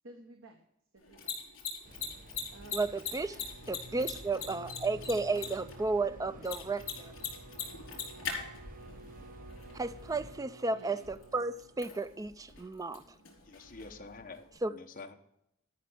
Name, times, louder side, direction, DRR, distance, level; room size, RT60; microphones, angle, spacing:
voice 1, 0.0-0.6 0.9-1.4 2.5-2.8 4.0-4.1 4.3-5.0 10.7-11.0, right 2 dB, 70° right, 1.1 m, -53 dB
Mechanisms, 1.0-14.6, left 6 dB, 70° left, 3.9 m, -44 dB
sound 1, 1.8-10.4, right 1 dB, 40° right, 0.8 m, -53 dB
voice 2, 2.7-3.4 3.7-7.1 9.7-13.0 14.6-14.7, right 3 dB, 15° right, 0.4 m, -33 dB
Bowed string instrument, 3.4-11.7, right 1 dB, 90° right, 0.8 m, -52 dB
voice 3, 13.4-15.1, left 3 dB, 40° left, 1.1 m, -48 dB
12.5 x 6.0 x 6.1 m
head